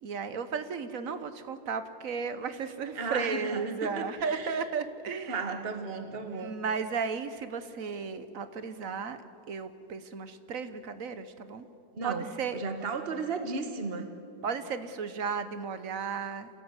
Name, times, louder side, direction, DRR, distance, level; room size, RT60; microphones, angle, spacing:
voice 1, 0.0-5.4 6.2-9.2 9.5-11.7 12.0-12.6 14.4-16.5, right 5 dB, 50° right, 11 dB, 1.4 m, -34 dB
voice 2, 3.0-4.6 5.3-6.6 11.9-12.3 12.5-14.1, right 4 dB, 35° right, 7 dB, 1.7 m, -34 dB
27.0 x 17.0 x 8.2 m, 2.5 s
omnidirectional pair, 2.0 m